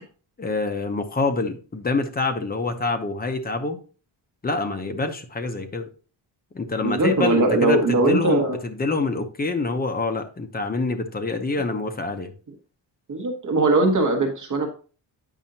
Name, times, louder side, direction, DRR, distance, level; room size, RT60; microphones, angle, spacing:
voice 1, 0.4-3.8 4.4-5.9 6.5-12.3, left 3 dB, 20° left, 0.7 m, -26 dB
voice 2, 6.8-8.6 13.1-14.7, right 2 dB, 45° right, 1.3 m, -20 dB
9.0 x 5.4 x 2.7 m
wide cardioid pair, 175°, 44 cm